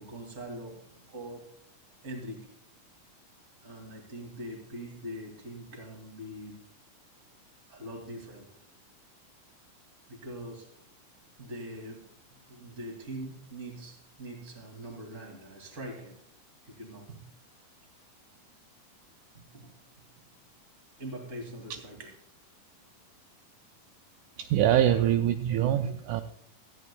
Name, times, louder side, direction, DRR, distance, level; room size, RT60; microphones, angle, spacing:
voice 1, 0.0-1.5 2.0-2.5 3.6-6.6 7.7-8.5 10.1-10.7 11.4-16.2 16.6-17.2 19.3-19.7 21.0-22.1, right 1 dB, 25° right, 2 dB, 2.4 m, -42 dB
voice 2, 24.4-26.2, right 11 dB, 80° right, 7 dB, 1.9 m, -24 dB
18.5 x 14.0 x 2.3 m, 0.69 s
omnidirectional pair, 3.8 m